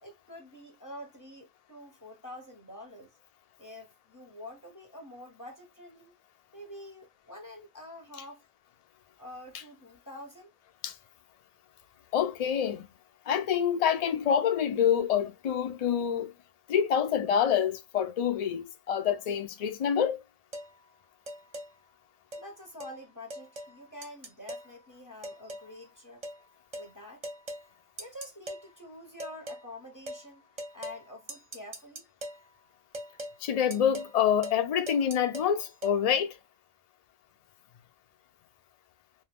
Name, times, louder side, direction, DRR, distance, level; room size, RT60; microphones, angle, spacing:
voice 1, 0.0-3.1 3.6-6.1 6.5-8.4 9.2-10.5 22.4-26.2 26.7-27.2 28.0-30.4 30.7-32.1, left 1 dB, 20° left, 0.7 m, -47 dB
voice 2, 12.1-12.9 13.3-16.3 16.7-20.2 33.4-36.4, left 8 dB, 65° left, 0.3 m, -27 dB
sound 1, 20.5-20.7 21.3-21.7 22.3-22.5 22.8-22.9 23.3-23.7 24.0-24.7 25.2-25.7 26.2-26.4 26.7-26.9 27.2-27.7 28.0-28.6 29.2-29.6 30.1-30.2 30.6-31.0 31.3-32.4 32.9-33.4 33.7-34.2 34.4-34.6 34.9-36.0, right 1 dB, 35° right, 0.6 m, -40 dB
2.6 x 2.3 x 3.4 m
omnidirectional pair, 1.3 m